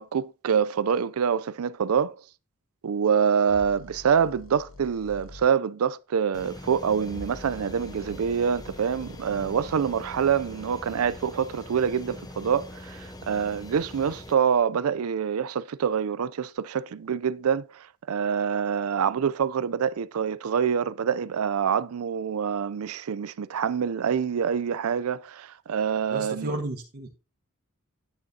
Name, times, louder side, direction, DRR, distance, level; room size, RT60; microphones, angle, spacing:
voice 1, 0.0-2.1 2.8-26.5, right 7 dB, 90° right, 0.4 m, -26 dB
sound 1, 3.5-5.5 7.0-11.3, left 2 dB, 70° left, 1.4 m, -47 dB
sound 2, 6.3-14.3, left 1 dB, 20° left, 0.6 m, -43 dB
voice 2, 26.1-27.2, right 2 dB, 50° right, 1.3 m, -33 dB
11.0 x 8.8 x 2.8 m
head